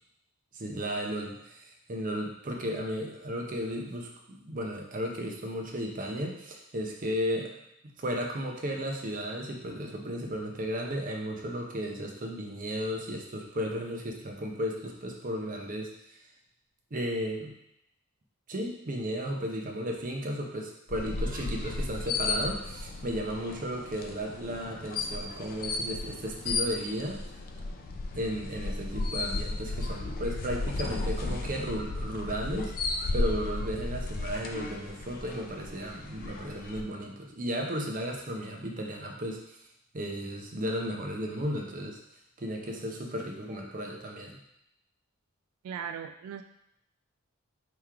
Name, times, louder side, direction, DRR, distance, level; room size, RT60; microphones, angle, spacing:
voice 1, 0.5-7.5 8.0-15.9 16.9-17.5 18.5-27.2 28.1-32.7 33.1-39.6 39.9-42.0 42.4-44.4, equal, 40° right, 1 dB, 0.7 m, -34 dB
sound 1, 20.9-36.8, left 2 dB, 40° left, 0.4 m, -34 dB
voice 2, 45.6-46.4, right 7 dB, 90° right, 7 dB, 0.3 m, -38 dB
3.6 x 3.0 x 4.6 m, 0.79 s
head